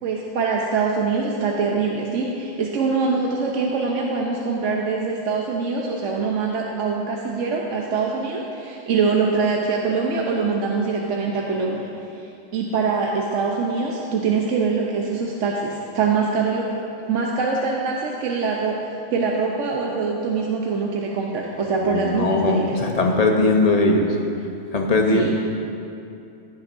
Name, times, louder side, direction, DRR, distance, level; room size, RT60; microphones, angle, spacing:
voice 1, 0.0-11.9 12.5-16.7 17.1-22.8 25.1-25.3, right 4 dB, 70° right, -1 dB, 1.1 m, -23 dB
voice 2, 21.8-24.0 24.7-25.3, left 2 dB, 35° left, 2 dB, 0.8 m, -19 dB
16.0 x 8.6 x 2.6 m, 2.7 s
omnidirectional pair, 1.4 m